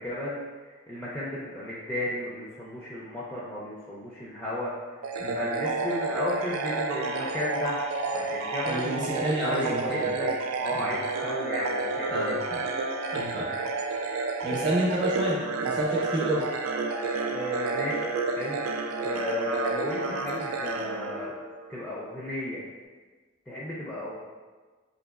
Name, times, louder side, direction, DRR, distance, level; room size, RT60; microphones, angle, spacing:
voice 1, 0.0-5.0 5.3-7.8 8.1-12.4 17.3-18.7 19.0-21.3 21.7-22.6 23.5-24.1, left 1 dB, 5° left, -7 dB, 0.4 m, -34 dB
sound 1, 5.0-21.8, right 3 dB, 85° right, 0.3 m, -30 dB
voice 2, 8.7-10.1 10.7-10.9 12.1-12.6 13.1-13.5 14.4-15.4 15.6-16.4, right 1 dB, 20° right, -6 dB, 0.8 m, -29 dB
3.9 x 2.8 x 2.3 m, 1.4 s
head